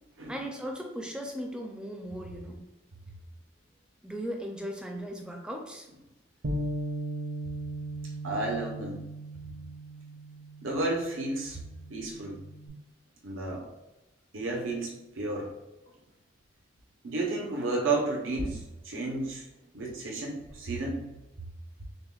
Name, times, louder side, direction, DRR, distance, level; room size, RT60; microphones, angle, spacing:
voice 1, 0.3-2.6 4.0-5.9, equal, 5° right, 1 dB, 0.4 m, -37 dB
Bass guitar, 6.4-12.7, right 1 dB, 55° right, 0.6 m, -38 dB
voice 2, 8.2-9.0 10.6-11.6 11.9-12.4 13.2-13.7 14.3-15.5 17.0-19.5 19.7-21.1, right 2 dB, 85° right, -1 dB, 0.8 m, -32 dB
6.4 x 2.2 x 2.3 m, 0.97 s
head